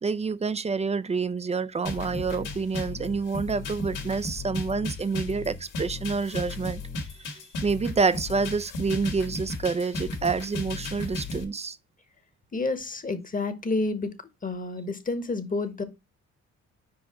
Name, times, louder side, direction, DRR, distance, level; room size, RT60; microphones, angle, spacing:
voice 1, 0.0-6.8 7.2-11.8, right 4 dB, 20° right, 0.5 m, -28 dB
sound 1, 1.8-11.4, left 2 dB, 80° left, 2.0 m, -35 dB
voice 2, 12.5-14.1 14.4-15.8, left 3 dB, 25° left, 1.2 m, -29 dB
4.9 x 4.8 x 4.8 m
cardioid pair, 90°, 30 cm